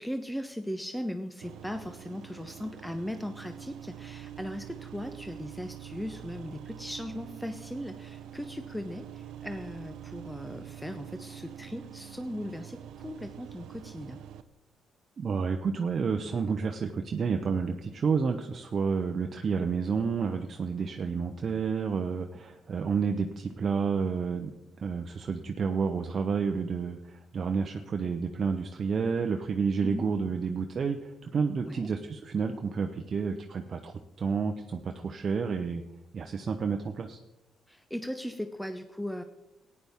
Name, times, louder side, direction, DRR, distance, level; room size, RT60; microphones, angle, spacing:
voice 1, 0.0-14.2 29.8-30.4 31.7-31.9 37.7-39.2, equal, 5° left, 7 dB, 0.7 m, -38 dB
sound 1, 1.4-14.4, right 10 dB, 80° right, 0.5 m, -45 dB
voice 2, 15.2-24.5 24.8-35.8 36.1-37.2, right 5 dB, 45° right, 5 dB, 0.7 m, -30 dB
14.0 x 9.7 x 3.6 m, 0.91 s
cardioid pair, 90°, 0 cm